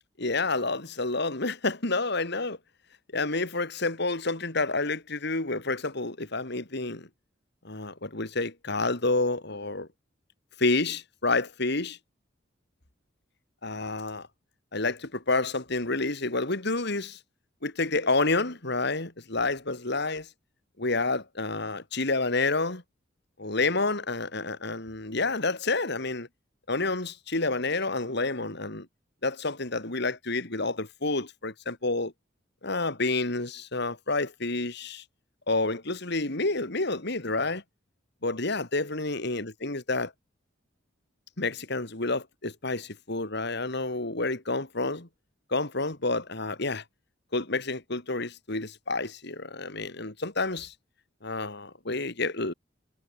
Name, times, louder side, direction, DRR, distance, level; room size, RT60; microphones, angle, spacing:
voice 1, 0.2-2.6 3.1-7.1 7.6-9.9 10.6-12.0 13.6-14.3 14.7-17.2 17.6-20.3 20.8-22.8 23.4-26.3 26.7-28.9 29.2-32.1 32.6-35.0 35.5-37.6 38.2-40.1 41.4-45.1 45.5-46.8 47.3-50.7 51.2-52.5, left 3 dB, 60° left, 3.5 m, -29 dB
head